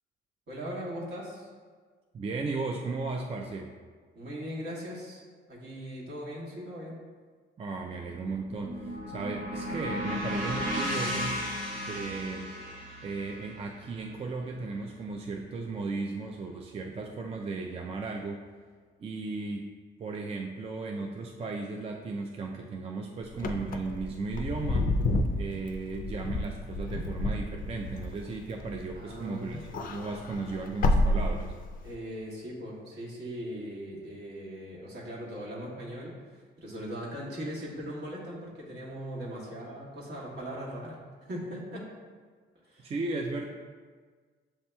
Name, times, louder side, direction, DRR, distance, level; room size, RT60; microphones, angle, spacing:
voice 1, 0.5-1.5 4.1-5.2 5.5-7.0 28.9-29.9 31.8-41.9 42.6-42.9, equal, 60° right, -5 dB, 1.4 m, -39 dB
voice 2, 2.1-3.7 7.6-11.4 11.8-12.5 13.0-18.4 19.0-19.7 20.0-24.9 25.3-31.5 42.8-43.5, right 3 dB, 30° right, 1 dB, 0.3 m, -35 dB
sound 1, 8.1-16.3, equal, 80° right, 1.2 m, -36 dB
Wind / Car, 23.3-29.1 29.5-31.9, left 2 dB, 45° left, 0.4 m, -30 dB
7.5 x 2.8 x 2.2 m, 1.5 s
cardioid pair, 90°, 20 cm